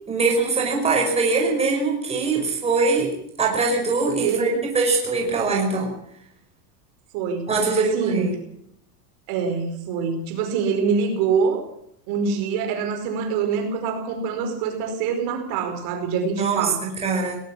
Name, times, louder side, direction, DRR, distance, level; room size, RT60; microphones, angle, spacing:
voice 1, 0.1-5.9 7.5-8.4 16.4-17.4, right 3 dB, 15° right, 0 dB, 5.3 m, -22 dB
voice 2, 7.1-8.3 9.3-11.7 12.1-16.8, right 5 dB, 50° right, 5 dB, 5.1 m, -25 dB
22.5 x 19.0 x 6.3 m, 0.72 s
supercardioid pair, 160°, 47 cm